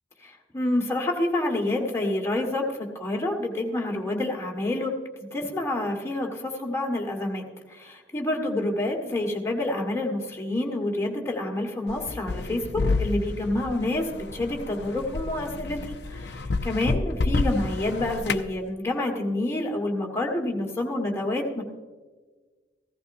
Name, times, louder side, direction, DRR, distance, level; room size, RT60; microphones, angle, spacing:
voice 1, 0.2-4.9 5.2-21.6, left 1 dB, 15° left, 0 dB, 1.7 m, -28 dB
sound 1, 11.9-18.5, left 3 dB, 65° left, 0.5 m, -29 dB
15.5 x 14.5 x 2.7 m, 1.3 s
head